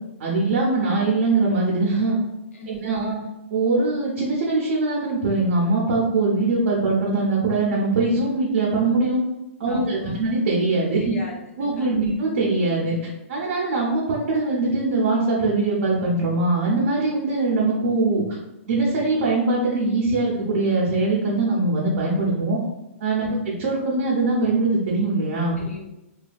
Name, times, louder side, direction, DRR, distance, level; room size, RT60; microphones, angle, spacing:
voice 1, 0.2-2.2 2.7-3.2 3.5-9.2 9.6-11.1 11.6-18.2 18.7-22.6 23.0-25.6, right 3 dB, 55° right, -5 dB, 0.6 m, -22 dB
voice 2, 2.5-3.1 9.7-10.3 11.0-12.2 23.3-23.5 25.6-25.9, left 3 dB, 85° left, 1 dB, 0.6 m, -38 dB
2.7 x 2.3 x 2.5 m, 0.93 s
hypercardioid pair, 160°, 7 cm